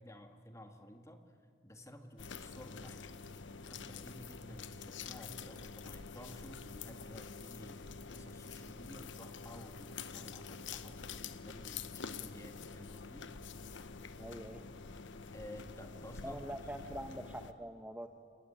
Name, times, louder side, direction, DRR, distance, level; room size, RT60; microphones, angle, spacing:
voice 1, 0.0-3.2 3.7-13.5 15.3-16.7, equal, 15° left, 6 dB, 1.7 m, -53 dB
sound 1, 2.2-17.5, left 5 dB, 90° left, 1.0 m, -47 dB
voice 2, 14.2-14.6 16.2-18.1, right 1 dB, 10° right, 5 dB, 0.8 m, -44 dB
27.5 x 21.5 x 8.6 m, 2.2 s
head